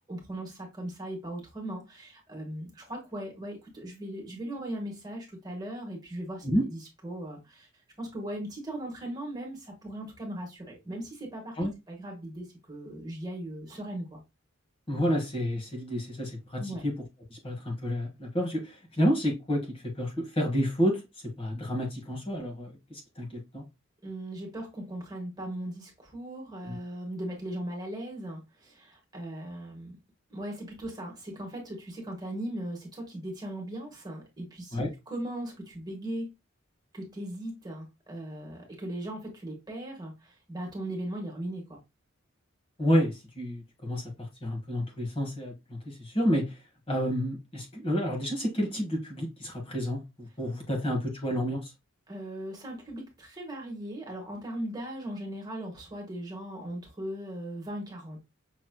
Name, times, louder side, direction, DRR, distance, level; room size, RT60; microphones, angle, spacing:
voice 1, 0.0-7.7 8.0-11.6 11.9-14.2 16.6-16.8 24.0-30.0 30.3-36.3 36.9-41.8 52.1-58.2, right 1 dB, 20° right, 1.5 m, -38 dB
voice 2, 14.9-16.9 17.3-21.0 21.4-23.6 26.7-26.8 34.7-34.9 42.8-46.6 46.9-51.7, equal, 30° left, 1.3 m, -30 dB
6.1 x 3.1 x 2.2 m
head